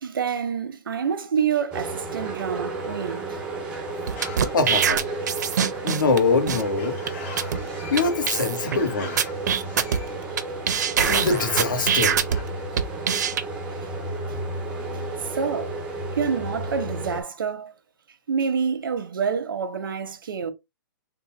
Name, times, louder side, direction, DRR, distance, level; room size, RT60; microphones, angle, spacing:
voice 1, 0.0-3.4 9.9-10.0 15.3-15.8 16.2-17.7 18.3-20.5, right 6 dB, 85° right, 0.9 m, -27 dB
sound 1, 1.7-17.2, right 2 dB, 10° right, 0.5 m, -32 dB
sound 2, 4.1-6.2 6.5-6.6 7.1-7.2 7.4-7.6 8.0-8.1 8.3-8.8 9.2-10.4 10.7-12.4 12.8-13.4, right 8 dB, 55° right, 0.6 m, -23 dB
sound 3, 4.2-12.4, left 3 dB, 35° left, 1.5 m, -42 dB
voice 2, 4.5-5.0 5.8-7.0 7.9-9.2 11.0-12.2, left 4 dB, 70° left, 1.1 m, -23 dB
3.8 x 2.2 x 4.2 m
hypercardioid pair, 175°, 11 cm